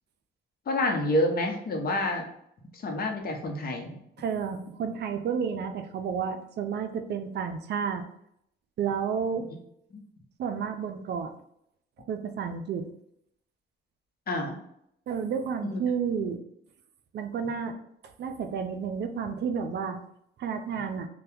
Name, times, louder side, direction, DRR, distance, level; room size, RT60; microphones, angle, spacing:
voice 1, 0.7-2.2 2.8-3.9 9.9-10.0 14.3-14.5 15.6-15.8, left 1 dB, 50° left, 2 dB, 0.8 m, -28 dB
voice 2, 4.2-8.0 8.8-9.4 10.4-11.3 12.1-12.9 15.1-16.4 17.1-17.7 18.2-20.0 20.4-21.1, right 6 dB, 60° right, 7 dB, 0.4 m, -31 dB
2.8 x 2.2 x 3.4 m, 0.73 s
cardioid pair, 90°, 20 cm